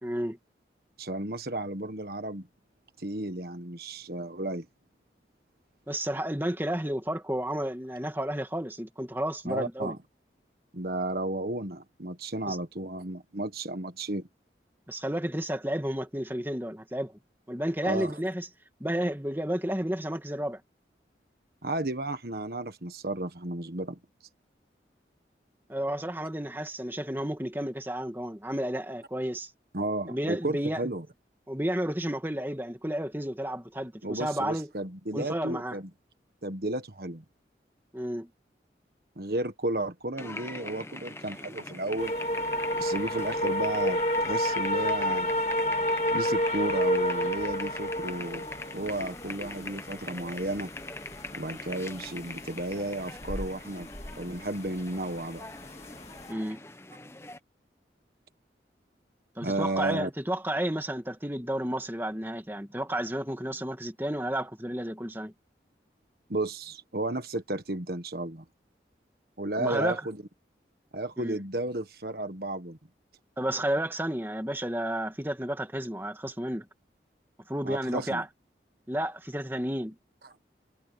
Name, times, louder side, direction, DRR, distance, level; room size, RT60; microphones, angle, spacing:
voice 1, 0.0-0.4 5.9-9.9 12.5-12.6 14.9-17.1 17.5-18.5 18.8-20.6 25.7-29.5 30.1-30.9 31.5-34.7 35.1-35.8 37.9-38.3 56.3-56.6 59.4-65.3 69.6-70.0 71.2-71.4 73.4-76.6 77.5-78.3 78.9-79.9, right 1 dB, 10° right, 2.3 m, -31 dB
voice 2, 1.0-2.5 3.0-4.7 9.4-10.0 10.7-14.3 17.9-18.2 21.6-24.0 29.7-31.0 34.0-35.9 36.4-37.2 39.2-42.1 42.8-45.4 46.1-48.4 48.7-50.7 51.4-53.9 54.2-55.4 59.4-60.1 66.3-68.4 69.4-70.2 70.9-72.8 77.6-78.2 80.2-80.3, right 1 dB, 55° right, 1.5 m, -33 dB
sound 1, 40.2-57.4, left 2 dB, 15° left, 1.0 m, -42 dB
sound 2, 42.0-56.3, equal, 40° left, 2.3 m, -31 dB
head